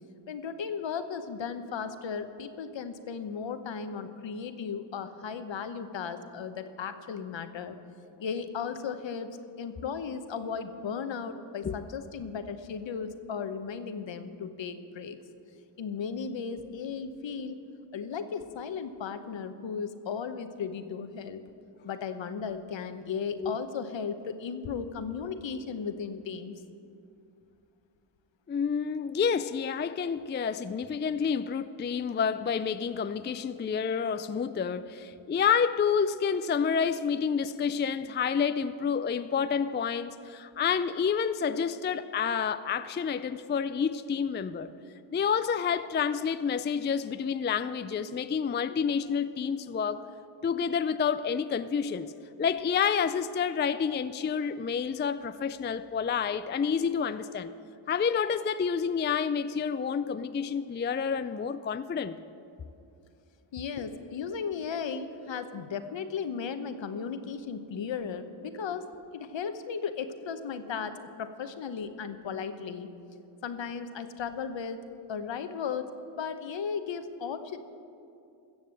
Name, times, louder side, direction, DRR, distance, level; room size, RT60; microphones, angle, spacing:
voice 1, 0.3-7.8 8.2-9.3 9.6-15.2 15.8-17.6 17.9-21.4 21.8-26.5 48.7-48.8 63.5-68.9 69.1-72.9 73.4-74.8 75.1-75.9 76.2-77.6, left 6 dB, 60° left, 10 dB, 1.0 m, -36 dB
voice 2, 28.5-44.7 45.1-50.0 50.4-52.1 52.4-57.5 57.9-62.2, left 6 dB, 25° left, 12 dB, 0.4 m, -29 dB
14.5 x 7.3 x 7.6 m, 2.6 s
cardioid pair, 50°, 49 cm